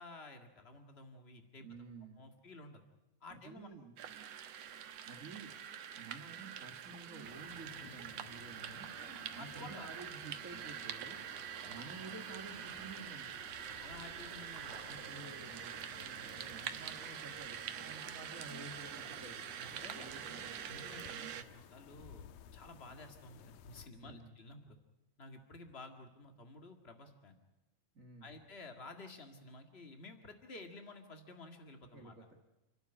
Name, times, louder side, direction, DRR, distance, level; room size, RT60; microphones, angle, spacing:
voice 1, 0.0-1.7 2.2-2.8 3.2-3.7 8.9-9.9 13.6-15.4 19.6-20.1 20.6-24.8 25.2-27.4 28.2-32.1, left 2 dB, 55° left, 5 dB, 0.6 m, -53 dB
voice 2, 1.6-2.2 3.3-4.0 5.0-5.5 5.9-8.9 9.3-11.2 11.6-13.4 14.8-20.7 23.9-24.4 27.9-28.3 31.9-32.3, right 3 dB, 35° right, 3 dB, 1.3 m, -52 dB
sound 1, 4.0-21.4, right 9 dB, 70° right, 1.6 m, -45 dB
sound 2, 7.2-23.9, left 9 dB, 70° left, 2.5 m, -57 dB
30.0 x 12.0 x 9.9 m, 1.0 s
omnidirectional pair, 4.6 m